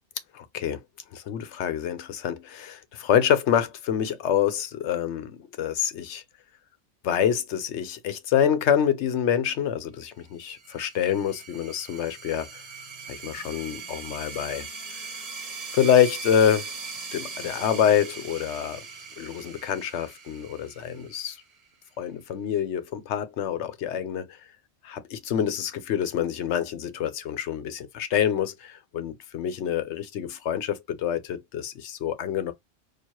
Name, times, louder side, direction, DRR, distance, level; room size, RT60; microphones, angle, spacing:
voice 1, 0.3-0.8 1.1-6.2 7.0-12.6 13.1-14.7 15.7-16.7 17.1-18.9 19.2-21.4 22.0-24.4 24.8-32.5, left 9 dB, 90° left, 1.0 m, -26 dB
sound 1, 10.4-21.7, right 5 dB, 35° right, 0.9 m, -40 dB
4.5 x 2.5 x 2.9 m
omnidirectional pair, 1.1 m